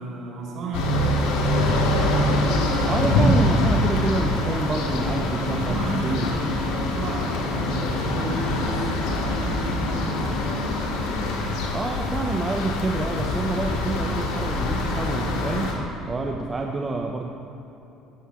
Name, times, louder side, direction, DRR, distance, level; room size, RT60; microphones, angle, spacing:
voice 1, 0.0-1.8 5.4-11.2, right 1 dB, 45° right, -1 dB, 4.1 m, -34 dB
sound 1, 0.7-15.7, left 1 dB, 85° left, 2.7 m, -24 dB
voice 2, 2.8-6.4 11.7-17.3, right 3 dB, 15° right, 1 dB, 0.8 m, -28 dB
16.0 x 9.0 x 7.8 m, 3.0 s
cardioid pair, 165°, 0 cm